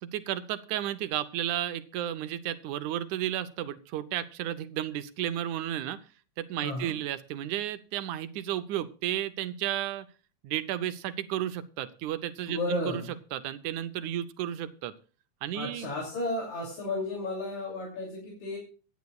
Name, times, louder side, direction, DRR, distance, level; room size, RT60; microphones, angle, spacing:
voice 1, 0.0-6.0 6.4-10.1 10.4-13.0 13.3-14.9 15.4-15.9, right 12 dB, 80° right, 13 dB, 2.0 m, -33 dB
voice 2, 6.6-6.9 12.5-13.1 15.5-18.6, left 2 dB, 65° left, -2 dB, 4.2 m, -33 dB
24.0 x 9.4 x 2.3 m, 0.35 s
omnidirectional pair, 3.6 m